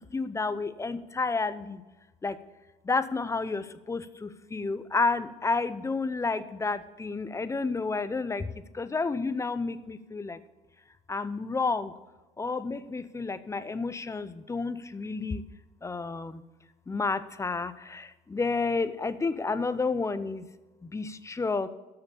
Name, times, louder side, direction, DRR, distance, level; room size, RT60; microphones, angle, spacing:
voice 1, 0.1-1.8 2.2-2.4 2.9-8.5 8.7-10.4 11.1-11.9 12.4-15.4 15.8-16.4 16.9-20.4 20.9-21.7, left 4 dB, 15° left, 13 dB, 0.6 m, -30 dB
13.5 x 5.8 x 6.9 m, 1.1 s
cardioid pair, 110°, 17 cm